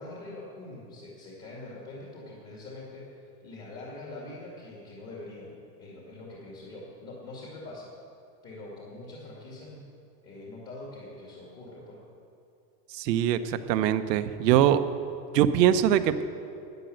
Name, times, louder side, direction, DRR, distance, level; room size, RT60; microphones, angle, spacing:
voice 1, 0.0-5.5 5.8-7.9 8.4-9.8 10.2-12.0, left 2 dB, 30° left, -4 dB, 2.2 m, -43 dB
voice 2, 12.9-14.8 15.3-16.2, right 10 dB, 75° right, 11 dB, 0.9 m, -22 dB
12.0 x 9.9 x 7.9 m, 2.5 s
supercardioid pair, 175°, 49 cm